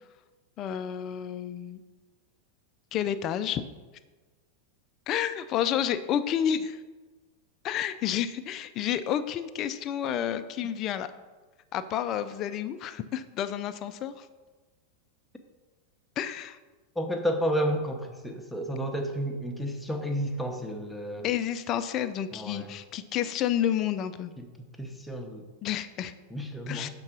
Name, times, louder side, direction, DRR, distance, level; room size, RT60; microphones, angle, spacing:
voice 1, 0.6-1.8 2.9-3.6 5.1-6.8 7.6-11.1 11.7-14.3 16.2-16.6 21.2-24.3 25.6-26.1 26.7-26.9, left 10 dB, 35° left, 11 dB, 0.4 m, -30 dB
voice 2, 17.0-21.3 22.3-22.7 24.4-25.4 26.3-26.9, equal, 5° left, 3 dB, 0.8 m, -31 dB
6.5 x 3.7 x 6.0 m, 1.3 s
figure-of-eight pair, 90°, 0 cm